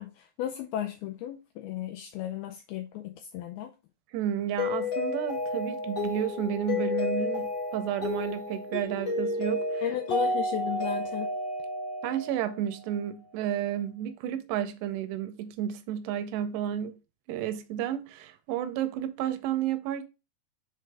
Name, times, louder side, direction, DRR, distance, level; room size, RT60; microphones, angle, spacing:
voice 1, 0.0-3.7 9.8-11.3, left 11 dB, 80° left, 2.3 m, -35 dB
voice 2, 4.1-9.8 12.0-16.9 17.3-20.0, right 10 dB, 85° right, 2.8 m, -31 dB
Mallet percussion, 4.6-12.7, left 2 dB, 45° left, 1.5 m, -31 dB
7.6 x 3.9 x 3.3 m
omnidirectional pair, 4.8 m